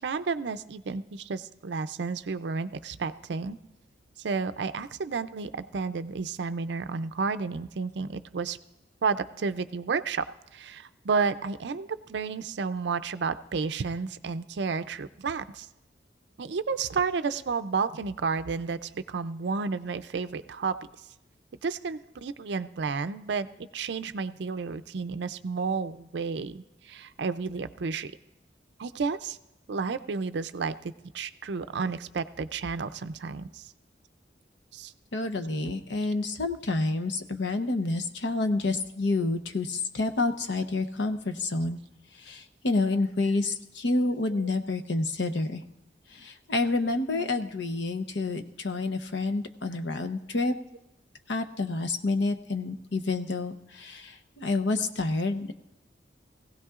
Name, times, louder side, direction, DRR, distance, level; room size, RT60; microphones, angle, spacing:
voice 1, 0.0-3.6 4.2-8.6 9.0-10.2 10.5-15.7 16.4-20.8 21.6-28.1 28.8-29.4 29.7-33.7 34.7-34.9 44.3-44.5 47.1-47.4, right 5 dB, 70° right, 11 dB, 0.4 m, -31 dB
voice 2, 35.1-41.8 42.2-45.6 46.1-50.6 51.3-55.5, left 2 dB, 75° left, 8 dB, 0.8 m, -29 dB
20.5 x 16.0 x 2.4 m, 0.88 s
head